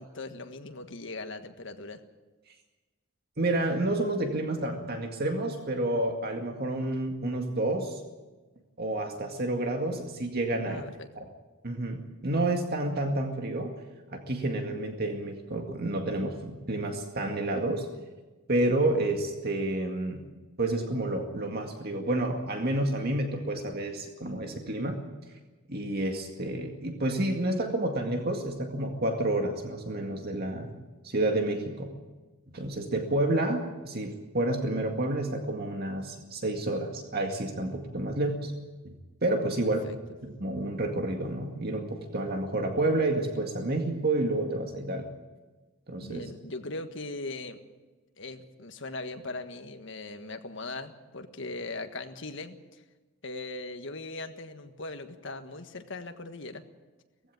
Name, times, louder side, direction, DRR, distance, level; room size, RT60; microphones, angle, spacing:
voice 1, 0.0-2.0 10.6-11.1 39.8-40.0 46.0-47.6 48.2-52.8 53.2-56.6, left 2 dB, 60° left, 7 dB, 1.5 m, -39 dB
voice 2, 3.4-8.0 8.8-10.8 11.2-11.3 11.6-13.7 14.1-17.9 18.5-20.2 20.6-25.0 25.7-30.7 31.0-31.9 32.5-38.5 39.2-39.9 40.2-45.1 45.9-46.2, right 2 dB, 50° right, 3 dB, 2.1 m, -29 dB
18.5 x 15.5 x 9.4 m, 1.2 s
head